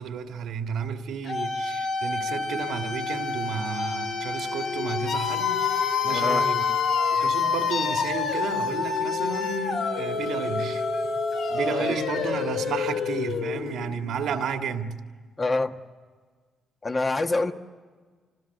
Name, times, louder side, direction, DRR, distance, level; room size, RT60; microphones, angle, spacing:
voice 1, 0.0-5.7 6.0-6.7 7.1-10.8 11.5-15.0, right 6 dB, 75° right, 1.9 m, -32 dB
sound 1, 1.2-14.1, left 5 dB, 80° left, 3.1 m, -27 dB
voice 2, 6.1-6.5 11.8-12.0 15.4-15.8 16.8-17.5, left 3 dB, 30° left, 1.3 m, -26 dB
26.0 x 20.5 x 8.2 m
cardioid pair, 90°, 0 cm